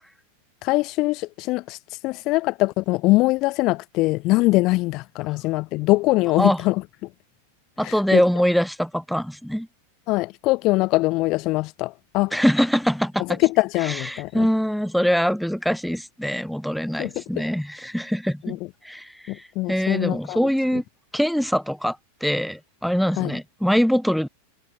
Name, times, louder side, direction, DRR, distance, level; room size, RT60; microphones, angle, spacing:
voice 1, 0.6-6.8 7.8-8.2 10.1-12.3 13.4-14.5 17.0-17.5 18.4-18.6 19.3-20.4 23.2-23.3, left 21 dB, 40° left, 1.6 m, -22 dB
voice 2, 7.8-9.7 12.3-13.4 13.8-18.6 18.8-20.8 21.1-24.3, equal, ahead, 3.5 m, -23 dB
figure-of-eight pair, 90°, 0 cm